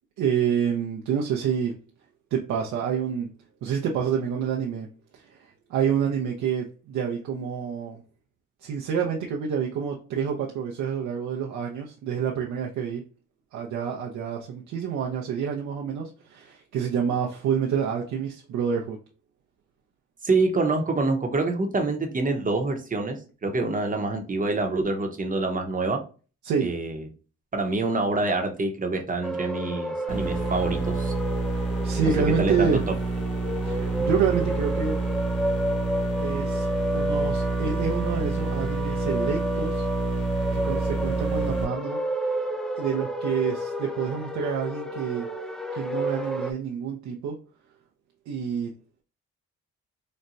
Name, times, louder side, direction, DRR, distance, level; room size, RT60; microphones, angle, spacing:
voice 1, 0.2-1.8 2.3-3.3 3.6-8.0 8.6-13.0 13.5-19.0 26.4-26.7 31.8-32.8 33.6-35.0 36.2-39.9 40.5-42.0 42.3-42.4 42.8-45.3 45.7-47.4 48.3-48.7, right 7 dB, 75° right, 0 dB, 0.6 m, -28 dB
voice 2, 20.2-26.0 26.6-27.0 27.5-31.1 32.3-32.8, right 3 dB, 25° right, 4 dB, 0.8 m, -26 dB
sound 1, 29.2-46.5, equal, ahead, 0.3 m, -31 dB
sound 2, 30.1-41.6, right 3 dB, 50° left, 1.7 m, -28 dB
4.1 x 2.1 x 2.5 m, 0.36 s
cardioid pair, 90°, 30 cm